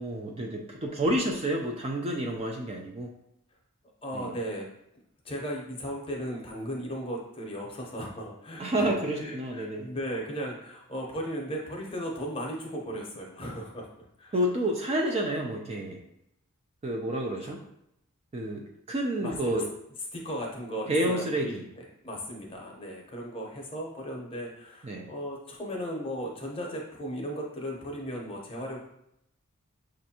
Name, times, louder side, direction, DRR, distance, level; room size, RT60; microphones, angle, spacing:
voice 1, 0.0-3.1 4.1-4.3 8.6-9.9 14.3-16.0 16.8-17.6 18.3-19.7 20.9-21.6 24.8-25.1, right 1 dB, 25° right, 1 dB, 0.4 m, -29 dB
voice 2, 4.0-4.7 5.2-13.9 14.2-14.4 17.4-17.5 19.2-19.6 20.1-21.6 22.0-28.8, equal, 25° left, -1 dB, 0.8 m, -36 dB
6.3 x 2.5 x 2.8 m, 0.78 s
head